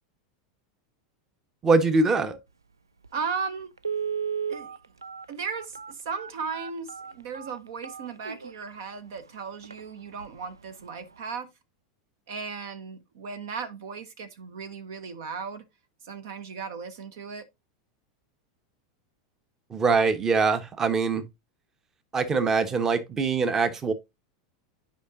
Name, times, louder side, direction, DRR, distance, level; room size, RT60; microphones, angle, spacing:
voice 1, 1.6-2.4 19.7-21.2 22.1-23.9, right 4 dB, 25° right, 1.0 m, -23 dB
Telephone, 3.0-3.1 3.8-8.6 9.2-9.3 9.6-9.8 10.2-10.5 10.8-10.9, right 7 dB, 85° right, 0.3 m, -34 dB
voice 2, 3.1-3.7 4.5-4.7 5.3-11.5 12.3-15.6 16.0-17.5, right 5 dB, 60° right, 0.9 m, -36 dB
10.5 x 5.1 x 2.7 m
figure-of-eight pair, 85°, 2 cm